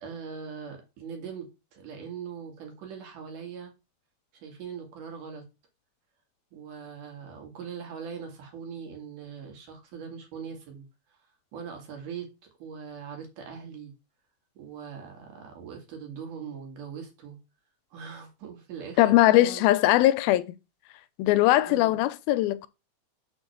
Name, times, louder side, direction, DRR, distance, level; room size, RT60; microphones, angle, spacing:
voice 1, 0.0-3.7 4.3-5.4 6.5-10.8 11.5-12.3 12.6-13.9 14.6-17.4 17.9-19.7 21.7-22.0, right 6 dB, 60° right, 3.3 m, -41 dB
voice 2, 19.0-20.4 21.2-22.7, left 16 dB, 85° left, 2.4 m, -20 dB
6.2 x 5.0 x 6.5 m
omnidirectional pair, 4.4 m